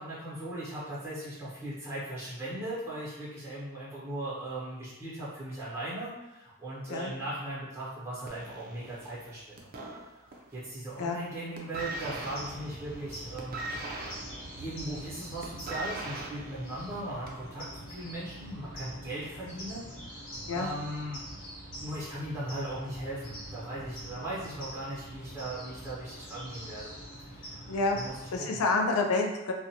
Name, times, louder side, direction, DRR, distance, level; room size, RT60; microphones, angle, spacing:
voice 1, 0.0-9.7 10.5-13.8 14.6-19.9 20.5-21.2 21.8-26.9 27.3-28.6, right 1 dB, 10° right, -8 dB, 0.8 m, -38 dB
sound 1, 8.3-10.6 10.9-11.3 11.5-17.5 18.3-18.4, right 2 dB, 40° right, 0.3 m, -41 dB
sound 2, 11.7-28.4, right 1 dB, 60° left, 0.8 m, -45 dB
voice 2, 27.7-28.0 28.3-29.5, left 3 dB, 85° left, 3 dB, 0.4 m, -28 dB
2.4 x 2.1 x 2.7 m, 0.97 s
head